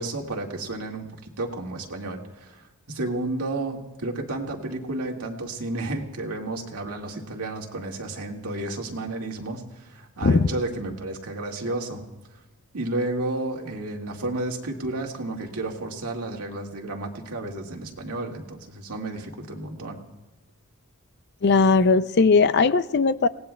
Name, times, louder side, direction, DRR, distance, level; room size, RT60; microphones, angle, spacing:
voice 1, 0.0-12.0 12.7-20.0, right 2 dB, 85° right, 1 dB, 2.0 m, -32 dB
voice 2, 21.4-23.3, left 4 dB, 50° left, 14 dB, 0.4 m, -18 dB
30.0 x 18.0 x 2.3 m, 1.1 s
head